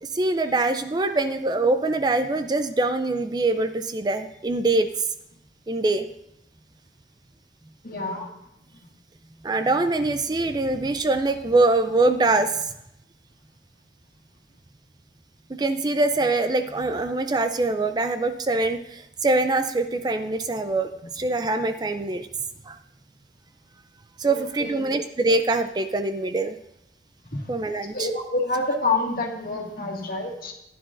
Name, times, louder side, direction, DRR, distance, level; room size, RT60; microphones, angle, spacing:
voice 1, 0.0-4.9 5.7-6.1 9.4-12.7 15.5-22.3 22.7-22.8 24.2-26.6 27.5-28.1, right 2 dB, 25° right, 9 dB, 0.4 m, -23 dB
voice 2, 7.8-8.3 24.3-24.9 27.3-27.4 27.9-30.5, left 2 dB, 55° left, 0 dB, 1.9 m, -27 dB
15.5 x 10.0 x 2.5 m, 0.82 s
head